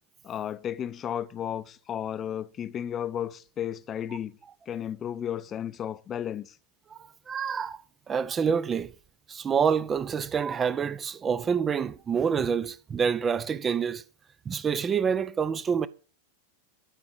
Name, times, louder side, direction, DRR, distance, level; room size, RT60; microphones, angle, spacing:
voice 1, 0.2-4.3 4.7-6.6, left 9 dB, 30° left, 0.7 m, -33 dB
voice 2, 6.9-7.8 8.1-8.9 9.3-14.0 14.5-15.9, right 6 dB, 25° right, 0.5 m, -27 dB
12.5 x 4.9 x 7.8 m
figure-of-eight pair, 90°, 0 cm